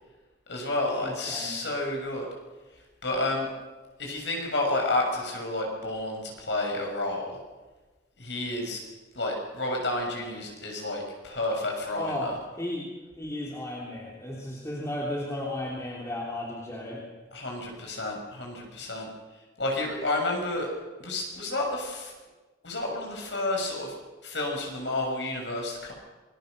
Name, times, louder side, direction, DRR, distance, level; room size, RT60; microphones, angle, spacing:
voice 1, 0.5-2.3 3.0-3.5 4.0-7.4 8.2-8.8 9.2-12.4 17.3-19.1 19.6-20.7 21.0-22.1 22.6-23.9 24.2-25.9, left 2 dB, 75° left, 1 dB, 6.9 m, -30 dB
voice 2, 1.0-1.6 12.0-12.3 12.6-12.9 13.2-17.0, left 1 dB, 15° left, -3 dB, 3.2 m, -34 dB
27.0 x 21.5 x 6.7 m, 1.3 s
head